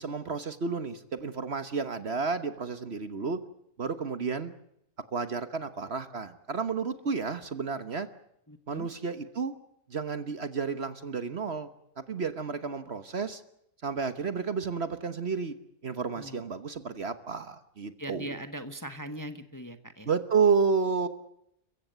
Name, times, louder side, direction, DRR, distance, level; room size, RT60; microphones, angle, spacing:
voice 1, 0.0-3.4 3.8-4.5 5.1-8.1 8.7-9.5 9.9-11.7 12.0-13.4 13.8-15.6 15.8-18.4 20.1-21.1, right 5 dB, 45° right, 11 dB, 1.3 m, -31 dB
voice 2, 8.5-8.9 16.2-16.5 18.0-20.1, right 1 dB, 15° left, 9 dB, 1.1 m, -40 dB
29.5 x 15.5 x 7.9 m, 0.76 s
omnidirectional pair, 1.6 m